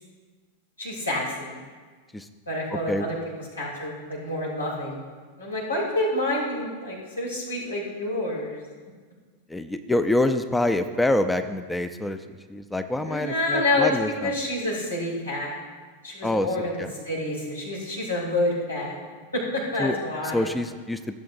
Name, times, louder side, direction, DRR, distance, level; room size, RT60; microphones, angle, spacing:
voice 1, 0.8-1.5 2.5-3.2 3.6-5.0 5.4-8.6 13.0-13.9 14.2-15.5 16.0-16.7 17.0-19.0 19.3-20.5, left 1 dB, 85° left, -5 dB, 3.2 m, -28 dB
voice 2, 9.5-12.2 12.5-14.3 16.2-16.5 16.8-16.9 19.8-20.0 20.3-21.2, left 1 dB, 5° left, 9 dB, 0.4 m, -26 dB
15.5 x 7.6 x 2.6 m, 1.5 s
figure-of-eight pair, 90°, 0 cm